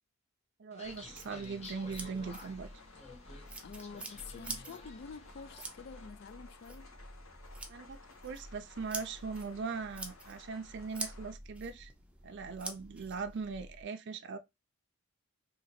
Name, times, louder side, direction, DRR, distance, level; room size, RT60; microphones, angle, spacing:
voice 1, 0.6-2.7 7.7-11.9 12.2-14.4, right 5 dB, 55° right, 0.5 m, -40 dB
sound 1, 0.7-6.0, left 3 dB, 30° left, 0.8 m, -52 dB
sound 2, 0.8-13.8, right 2 dB, 5° right, 0.5 m, -47 dB
sound 3, 0.9-11.3, left 4 dB, 75° left, 1.1 m, -58 dB
voice 2, 3.6-6.9, left 5 dB, 50° left, 0.3 m, -48 dB
2.9 x 2.8 x 4.1 m
head